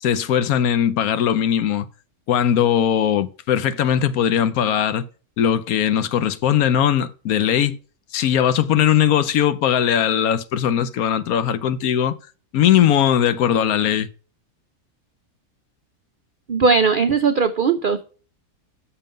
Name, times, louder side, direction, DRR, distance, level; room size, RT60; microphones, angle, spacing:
voice 1, 0.0-1.9 2.3-5.1 5.4-7.8 8.1-12.2 12.5-14.1, left 9 dB, 75° left, 1.1 m, -19 dB
voice 2, 16.5-18.0, right 5 dB, 70° right, 0.5 m, -18 dB
6.9 x 5.5 x 5.1 m
omnidirectional pair, 1.6 m